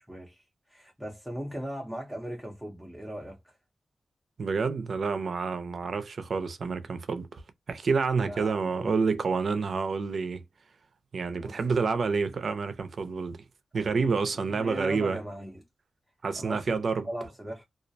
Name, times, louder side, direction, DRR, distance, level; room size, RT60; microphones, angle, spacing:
voice 1, 0.0-3.6 8.2-8.9 11.3-11.8 13.7-15.6 16.4-17.6, equal, 5° right, 0.6 m, -39 dB
voice 2, 4.4-7.4 7.7-10.4 11.1-13.4 13.7-15.2 16.2-17.1, right 4 dB, 55° right, 0.4 m, -28 dB
2.3 x 2.0 x 2.6 m
wide cardioid pair, 155°, 0 cm